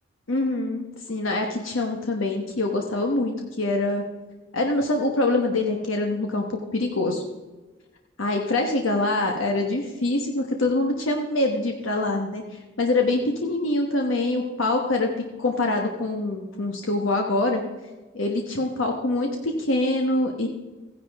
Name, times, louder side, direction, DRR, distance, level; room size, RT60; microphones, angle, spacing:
voice 1, 0.3-4.0 4.5-7.2 8.2-12.4 12.8-15.1 15.4-17.6 18.1-20.5, left 2 dB, 70° left, 2 dB, 1.2 m, -24 dB
15.0 x 10.5 x 3.5 m, 1.2 s
head